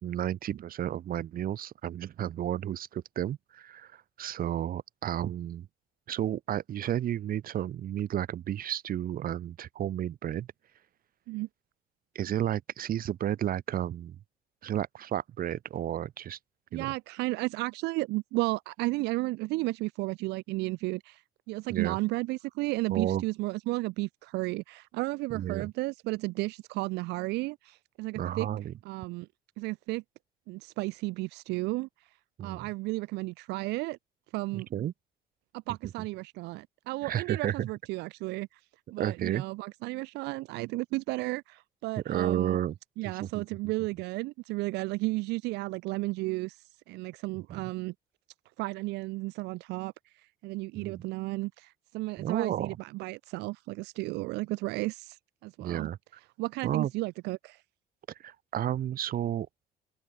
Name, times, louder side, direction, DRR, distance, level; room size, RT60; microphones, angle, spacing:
voice 1, 0.0-5.7 6.1-10.5 12.1-14.2 14.6-16.4 16.7-16.9 21.7-22.0 22.9-23.2 25.3-25.7 28.1-28.7 32.4-32.7 34.5-34.9 37.0-37.7 39.0-39.4 42.1-42.8 43.2-43.4 47.5-47.7 50.7-51.0 52.2-52.8 55.6-56.0 56.6-56.9 58.2-59.5, right 11 dB, 60° right, 4.1 m, -32 dB
voice 2, 16.7-28.5 28.8-29.3 29.6-30.0 30.5-32.1 32.4-34.0 34.3-34.7 35.5-38.6 38.9-42.6 43.0-47.9 48.6-55.9 56.4-57.6, right 22 dB, 90° right, 0.7 m, -33 dB
open air
cardioid pair, 110°, 17 cm